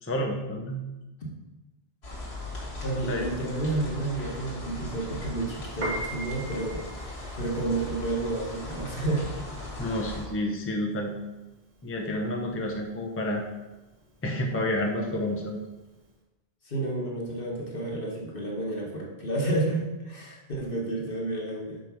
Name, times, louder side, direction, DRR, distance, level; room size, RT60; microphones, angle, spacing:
voice 1, 0.0-0.8 3.1-3.2 9.8-11.2 11.8-13.4 14.2-15.6, left 1 dB, 15° left, 0 dB, 0.7 m, -29 dB
sound 1, 2.0-10.2, left 1 dB, 85° left, 1.9 m, -38 dB
voice 2, 2.8-9.3 16.6-21.8, right 2 dB, 60° left, -2 dB, 1.6 m, -31 dB
Piano, 5.7-16.1, right 2 dB, 45° right, 1.3 m, -41 dB
5.3 x 4.6 x 6.1 m, 1.1 s
omnidirectional pair, 1.0 m